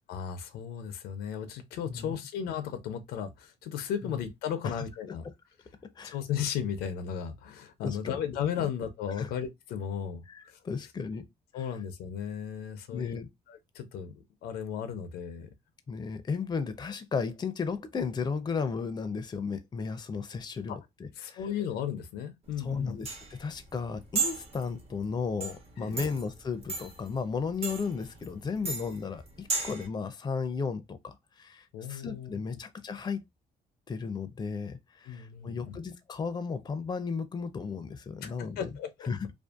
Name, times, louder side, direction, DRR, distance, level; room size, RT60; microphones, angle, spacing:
voice 1, 0.1-5.2 6.1-10.6 11.5-13.2 13.5-14.1 14.4-15.5 20.7-20.8 21.2-23.0 25.8-26.1 31.7-32.3 35.1-35.8 38.2-39.1, left 8 dB, 90° left, 0.5 m, -35 dB
voice 2, 1.9-2.2 6.0-6.2 7.8-8.2 8.6-8.7 9.2-9.3 10.3-11.3 12.9-13.3 15.9-21.4 22.6-33.2 33.9-38.7 39.1-39.3, left 5 dB, 25° left, 0.4 m, -34 dB
sound 1, 22.5-29.9, right 4 dB, 40° right, 0.9 m, -36 dB
2.5 x 2.3 x 2.3 m
cardioid pair, 80°, 16 cm